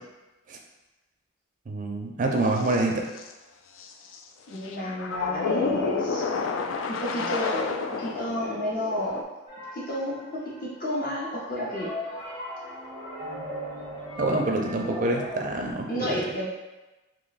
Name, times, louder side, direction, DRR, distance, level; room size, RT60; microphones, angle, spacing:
voice 1, 1.7-3.1 14.2-16.2, right 2 dB, 40° right, 1 dB, 0.4 m, -26 dB
sound 1, 2.4-2.8 3.2-3.3 3.8-4.2 4.5-9.2, left 4 dB, 80° left, 0.3 m, -30 dB
voice 2, 4.5-6.2 6.9-7.7 8.0-9.2 9.7-10.1 10.6-11.9 15.9-16.5, equal, 45° left, -6 dB, 0.7 m, -31 dB
sound 2, 9.5-10.8 11.4-15.7, left 1 dB, 20° left, 0.9 m, -38 dB
2.9 x 2.2 x 3.9 m, 1.1 s
head